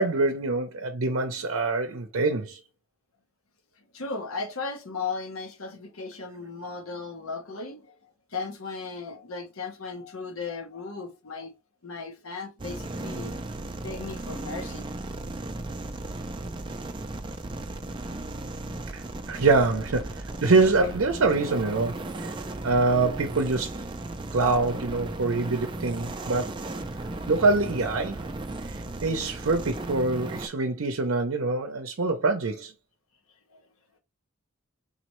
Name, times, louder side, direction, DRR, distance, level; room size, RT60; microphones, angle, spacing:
voice 1, 0.0-2.6 18.9-22.3 22.6-23.8 24.3-26.6 27.3-28.2 28.7-32.7, right 3 dB, 70° right, 0.6 m, -25 dB
voice 2, 3.9-7.9 8.3-11.5 11.8-13.3 13.8-14.9 22.1-22.6 33.5-33.6, left 4 dB, 80° left, 0.9 m, -36 dB
sound 1, 12.6-30.5, right 2 dB, 20° right, 0.4 m, -36 dB
4.0 x 3.1 x 3.0 m
head